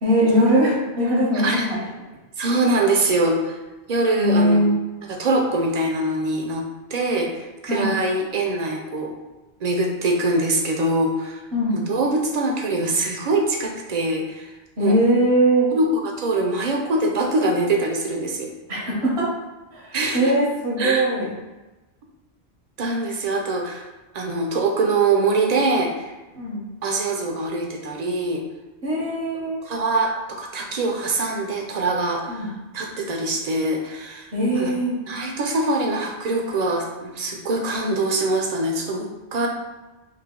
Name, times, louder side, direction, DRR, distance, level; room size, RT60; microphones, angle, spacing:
voice 1, 0.0-1.6 4.2-4.7 7.7-7.9 11.5-11.8 14.8-15.7 18.7-19.3 19.7-21.3 26.3-26.6 28.8-29.6 32.3-32.5 34.3-35.0, right 1 dB, 80° right, -4 dB, 1.4 m, -20 dB
voice 2, 1.3-1.8 2.4-3.6 3.9-4.7 5.1-9.1 9.6-11.4 11.7-14.5 14.8-15.0 15.7-18.5 19.9-20.3 20.8-21.1 22.8-23.9 24.1-26.1 26.8-28.4 29.6-34.7 35.1-39.5, right 2 dB, 50° right, 1 dB, 0.6 m, -23 dB
3.3 x 2.7 x 3.6 m, 1.1 s
omnidirectional pair, 1.1 m